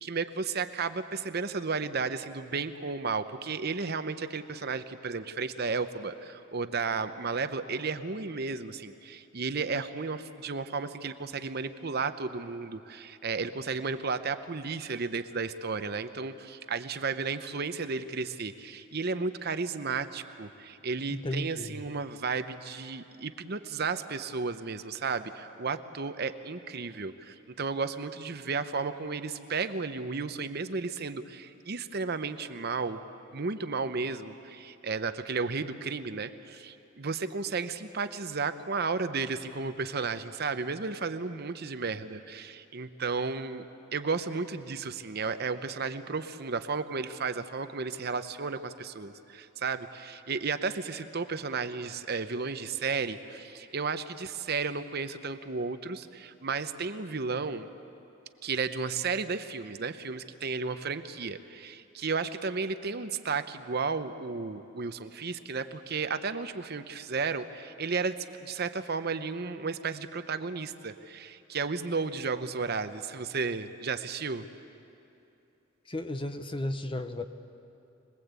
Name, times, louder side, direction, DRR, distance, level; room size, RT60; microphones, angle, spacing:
voice 1, 0.0-33.0 33.3-43.7 43.9-57.7 58.4-74.5, right 4 dB, 45° right, 10 dB, 0.8 m, -33 dB
voice 2, 21.1-21.8 75.9-77.2, left 1 dB, 25° left, 8 dB, 0.8 m, -34 dB
25.5 x 20.5 x 8.2 m, 2.9 s
head